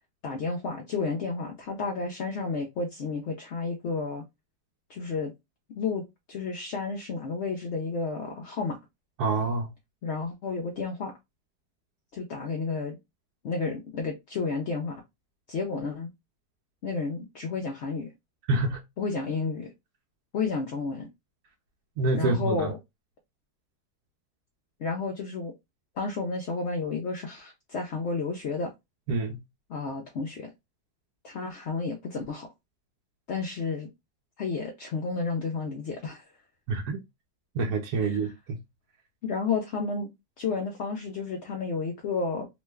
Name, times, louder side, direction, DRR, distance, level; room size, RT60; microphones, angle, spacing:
voice 1, 0.2-4.2 4.9-5.3 5.8-6.0 6.3-8.8 10.0-11.1 12.1-13.0 13.4-15.0 15.5-16.1 16.8-18.1 19.0-19.7 20.3-21.1 22.1-22.8 24.8-25.5 26.0-28.7 29.7-30.5 31.2-32.5 33.3-33.9 34.4-36.2 38.0-38.2 39.2-40.1 40.4-42.5, left 4 dB, 70° left, 0.7 m, -31 dB
voice 2, 9.2-9.7 18.5-18.8 22.0-22.7 29.1-29.4 36.7-37.0 37.5-38.6, right 3 dB, 70° right, 1.1 m, -27 dB
3.0 x 2.1 x 3.3 m
omnidirectional pair, 1.7 m